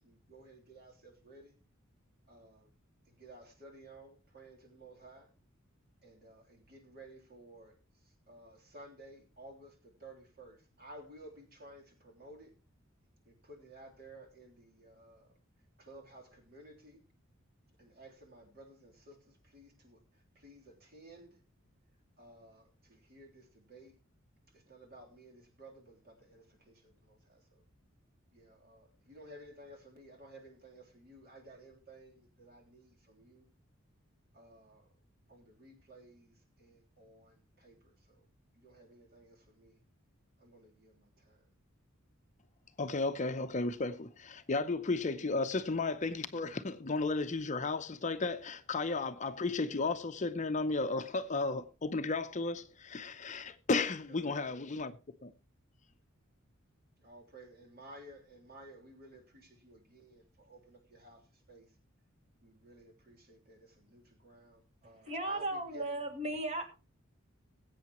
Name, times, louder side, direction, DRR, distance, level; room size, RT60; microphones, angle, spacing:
voice 1, 0.0-1.5 2.3-2.7 3.1-5.3 6.0-7.8 8.3-12.5 13.2-15.3 15.8-17.0 17.8-20.0 20.3-21.4 22.2-23.9 24.5-27.6 28.3-33.4 34.3-34.9 35.3-38.2 38.5-39.8 40.4-41.4 54.1-54.7 57.0-61.7 62.4-65.9, right 1 dB, 50° right, 3.3 m, -55 dB
voice 2, 42.8-55.3, left 3 dB, 35° left, 0.7 m, -34 dB
voice 3, 65.0-66.7, right 2 dB, 35° right, 2.2 m, -36 dB
20.5 x 8.4 x 3.0 m
head